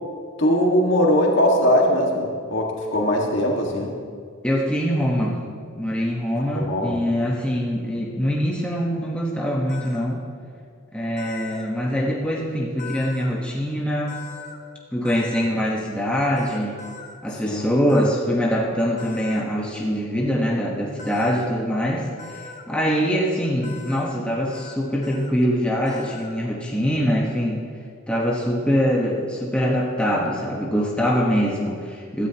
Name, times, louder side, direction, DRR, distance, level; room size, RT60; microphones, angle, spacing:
voice 1, 0.4-3.9 6.5-7.0 17.4-17.7, equal, 60° left, 0 dB, 1.9 m, -20 dB
voice 2, 4.4-5.4 5.7-10.2 10.9-14.2 14.9-16.7 17.2-27.6 28.1-32.3, equal, 5° left, -4 dB, 1.3 m, -23 dB
sound 1, 9.7-10.0 11.2-11.7 12.8-13.3 14.1-14.6 15.0-15.5 16.4-17.1 17.9-18.1 19.0-19.4 21.0-21.5 22.2-22.6 23.6-24.1 24.5-24.8 25.0-25.3 25.9-26.4, left 5 dB, 35° left, 1.0 m, -40 dB
16.0 x 13.0 x 3.0 m, 2.1 s
head